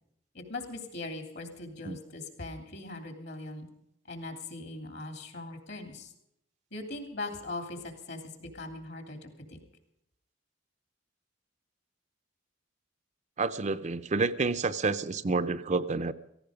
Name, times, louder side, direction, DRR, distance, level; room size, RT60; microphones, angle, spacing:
voice 1, 0.3-3.7 4.1-6.1 6.7-9.6, left 2 dB, 60° left, 6 dB, 3.1 m, -40 dB
voice 2, 13.4-16.1, right 3 dB, 40° right, 12 dB, 0.6 m, -29 dB
17.5 x 15.0 x 5.1 m, 0.79 s
head